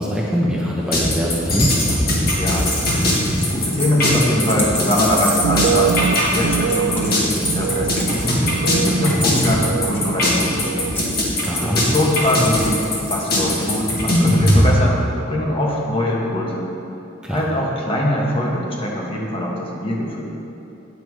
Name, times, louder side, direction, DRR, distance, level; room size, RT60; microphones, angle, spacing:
voice 1, 0.0-1.8 11.4-11.8 17.2-17.4, equal, 5° right, -5 dB, 0.8 m, -22 dB
sound 1, 0.9-14.6, left 1 dB, 55° left, 1.8 m, -20 dB
voice 2, 2.2-6.0 6.2-10.9 11.6-12.8 13.1-16.7 17.3-20.3, left 1 dB, 30° left, -3 dB, 1.4 m, -22 dB
sound 2, 2.5-14.2, equal, 10° left, 1.4 m, -31 dB
sound 3, 5.3-11.2 11.4-12.1 12.4-12.9, right 6 dB, 80° right, 0.3 m, -25 dB
9.5 x 7.1 x 4.7 m, 2.9 s
head